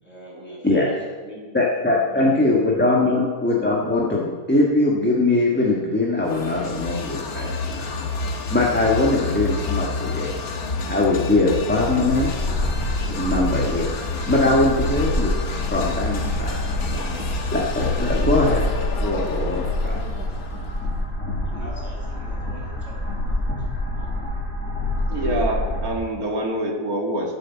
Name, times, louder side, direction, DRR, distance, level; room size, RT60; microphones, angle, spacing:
voice 1, 0.0-1.5 1.8-2.5 2.8-3.2 21.4-24.3, right 1 dB, 25° left, -4 dB, 4.9 m, -42 dB
voice 2, 1.5-7.8 8.5-10.3 10.9-12.3 13.0-13.9 14.3-15.3 15.7-16.6 16.9-17.0 17.5-18.6 19.0-20.0, left 2 dB, 5° left, -4 dB, 1.4 m, -21 dB
sound 1, 6.2-20.9, left 3 dB, 75° left, 1.8 m, -29 dB
sound 2, 11.5-26.0, left 1 dB, 60° left, 3.3 m, -27 dB
voice 3, 25.1-27.4, right 1 dB, 75° right, 1 dB, 2.3 m, -25 dB
13.5 x 8.1 x 7.2 m, 1.5 s
omnidirectional pair, 1.6 m